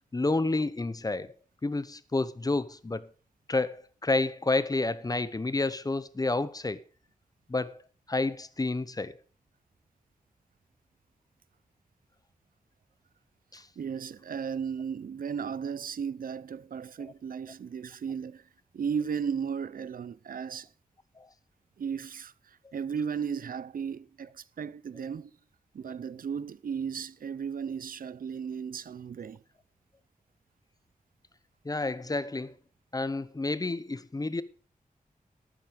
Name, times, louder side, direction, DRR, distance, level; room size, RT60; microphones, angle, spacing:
voice 1, 0.1-1.3 1.6-3.1 3.5-6.8 7.5-7.8 8.1-9.1 13.5-13.6 31.6-32.5 32.9-34.4, left 2 dB, 25° left, 0.8 m, -29 dB
voice 2, 13.8-18.5 18.7-20.7 21.8-25.3 25.7-29.4, right 7 dB, 80° right, 0.6 m, -35 dB
12.0 x 8.9 x 5.1 m
wide cardioid pair, 95°, 14 cm